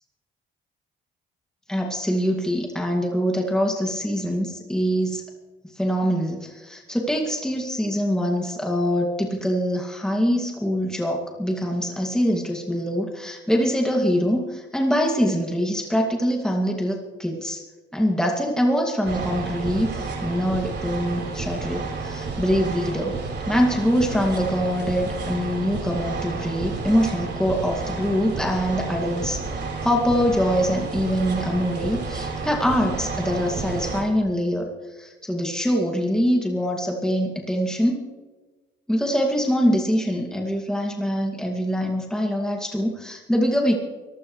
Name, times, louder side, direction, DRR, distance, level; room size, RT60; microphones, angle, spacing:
voice 1, 1.7-5.2 5.8-17.6 17.9-23.1 23.5-29.4 29.8-34.7 35.0-38.0 38.9-43.8, equal, 5° left, 0 dB, 2.2 m, -24 dB
sound 1, 19.0-34.0, right 4 dB, 60° right, 4.1 m, -31 dB
23.5 x 15.5 x 3.2 m, 1.3 s
cardioid pair, 90°, 20 cm